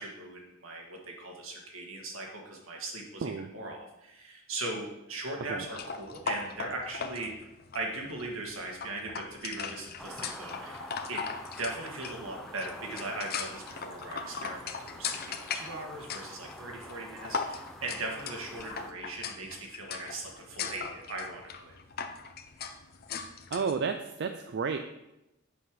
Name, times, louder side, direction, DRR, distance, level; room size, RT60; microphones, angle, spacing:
voice 1, 0.0-7.5 7.7-11.3 11.6-21.7, right 2 dB, 80° right, 0 dB, 1.9 m, -39 dB
sound 1, 5.7-23.8, left 5 dB, 50° left, 0.6 m, -39 dB
sound 2, 10.0-18.9, equal, ahead, 0.6 m, -47 dB
voice 2, 23.5-24.8, right 5 dB, 60° right, 7 dB, 0.4 m, -31 dB
8.3 x 5.6 x 4.8 m, 0.91 s
head